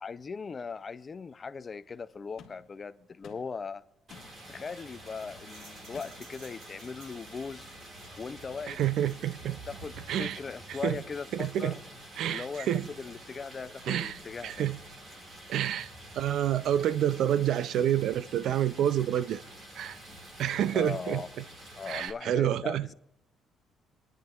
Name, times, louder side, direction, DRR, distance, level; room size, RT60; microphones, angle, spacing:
voice 1, 0.0-3.8 4.5-7.7 8.2-8.8 9.7-11.8 12.2-14.7 20.7-21.3 21.8-22.9, left 5 dB, 25° left, 0.4 m, -39 dB
sound 1, 2.4-2.7 3.2-3.7 4.1-4.5 5.9-6.4, left 6 dB, 55° left, 1.5 m, -52 dB
Stream, 4.1-22.1, right 1 dB, 30° right, 1.9 m, -49 dB
sound 2, 4.9-11.0, right 2 dB, 85° right, 3.6 m, -53 dB
voice 2, 8.7-9.6 10.1-10.4 10.7-11.0 11.3-11.8 12.2-12.9 13.9-14.8 15.5-15.9 16.1-19.4 19.8-20.0 20.4-21.2 21.9-22.9, right 11 dB, 60° right, 0.4 m, -28 dB
28.5 x 10.5 x 2.3 m
cardioid pair, 170°, 0 cm